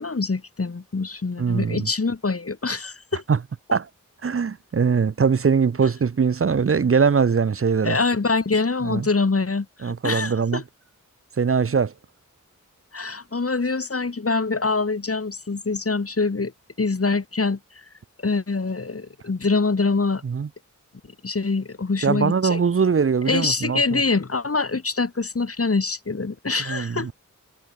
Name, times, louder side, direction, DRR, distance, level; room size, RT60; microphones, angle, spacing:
voice 1, 0.0-3.2 7.8-10.6 12.9-16.5 16.8-17.6 18.2-20.2 21.2-22.6 23.3-27.1, left 4 dB, 45° left, 1.1 m, -24 dB
voice 2, 1.4-1.9 3.3-3.4 3.7-3.9 4.2-8.0 8.9-9.1 9.8-10.6 11.4-11.9 20.2-20.5 22.0-24.0 26.7-27.1, right 6 dB, 45° right, 0.5 m, -21 dB
wide cardioid pair, 50°, 31 cm